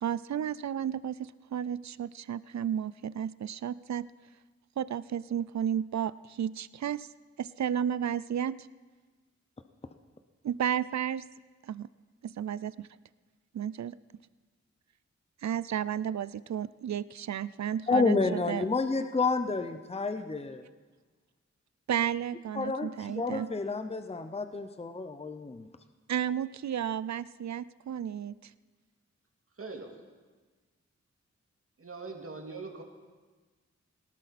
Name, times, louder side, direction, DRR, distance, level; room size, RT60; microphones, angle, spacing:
voice 1, 0.0-4.1 4.8-7.1 7.4-8.7 10.4-11.3 11.6-11.9 12.2-12.9 13.5-14.0 15.4-18.6 21.9-23.5 26.1-28.5, right 9 dB, 70° right, 18 dB, 0.5 m, -33 dB
voice 2, 17.9-20.6 22.5-25.7, left 4 dB, 20° left, 9 dB, 0.7 m, -30 dB
voice 3, 29.6-29.9 31.8-32.8, right 3 dB, 50° right, 2 dB, 2.3 m, -41 dB
19.0 x 17.5 x 4.2 m, 1.4 s
wide cardioid pair, 85°, 29 cm